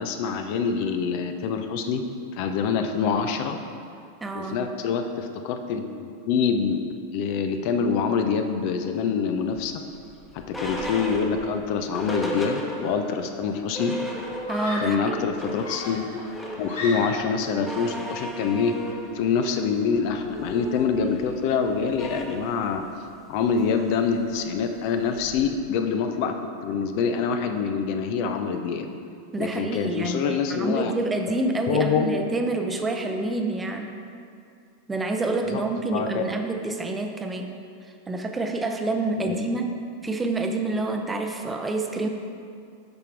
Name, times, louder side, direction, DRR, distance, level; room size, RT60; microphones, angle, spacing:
voice 1, 0.0-2.0 2.3-3.6 4.3-6.8 7.1-9.7 10.3-14.0 14.8-16.2 16.6-22.8 23.3-26.4 26.6-28.9 29.4-30.9 31.7-32.1 35.5-36.2 39.2-39.4, left 6 dB, 45° left, 6 dB, 0.6 m, -25 dB
voice 2, 4.2-4.7 14.5-15.2 29.3-33.9 34.9-37.5 38.1-39.7 40.0-42.1, right 2 dB, 15° right, 4 dB, 0.7 m, -27 dB
sound 1, 9.5-13.2 13.5-13.6 13.7-14.8 15.1-25.6, right 1 dB, 10° left, 1.1 m, -37 dB
Screaming, 13.3-13.4 14.4-15.1 15.6-17.4, left 1 dB, 65° left, 2.0 m, -35 dB
8.6 x 5.9 x 4.6 m, 2.4 s
figure-of-eight pair, 90°, 0 cm